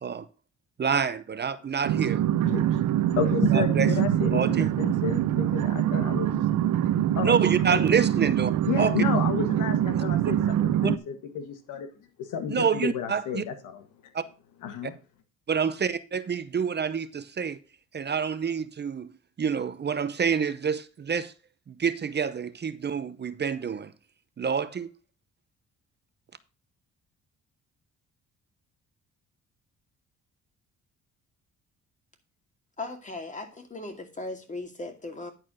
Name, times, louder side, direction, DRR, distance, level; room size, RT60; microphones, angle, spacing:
voice 1, 0.8-2.2 3.5-3.9 4.3-4.7 7.2-8.5 8.8-8.9 10.0-10.1 10.8-10.9 12.5-13.4 14.1-14.2 15.5-17.6 17.9-19.1 19.4-21.3 21.7-23.9 24.4-24.9, right 6 dB, 35° right, 0.7 m, -27 dB
sound 1, 1.8-11.0, right 11 dB, 75° right, 0.6 m, -24 dB
voice 2, 2.5-2.8 3.2-6.5 7.1-7.4 7.7-7.8 8.7-11.9 12.2-13.8 14.6-14.9, left 8 dB, 85° left, 1.6 m, -31 dB
voice 3, 32.8-35.3, left 2 dB, 25° left, 2.3 m, -37 dB
10.5 x 4.5 x 6.2 m
cardioid pair, 90°, 30 cm